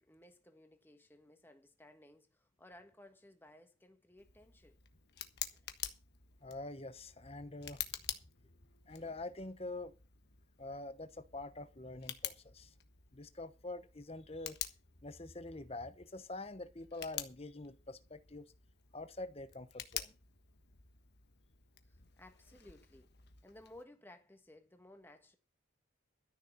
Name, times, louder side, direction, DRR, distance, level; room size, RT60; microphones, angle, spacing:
voice 1, 0.0-4.8 5.5-5.7 21.8-23.2 23.4-25.4, left 1 dB, 10° left, 1.4 m, -59 dB
Tick, 4.2-23.8, left 11 dB, 50° left, 1.4 m, -48 dB
voice 2, 6.4-7.8 8.9-9.9 10.6-12.7 13.1-14.6 15.0-18.5 18.9-20.2, left 2 dB, 30° left, 1.0 m, -45 dB
13.5 x 6.7 x 7.3 m
head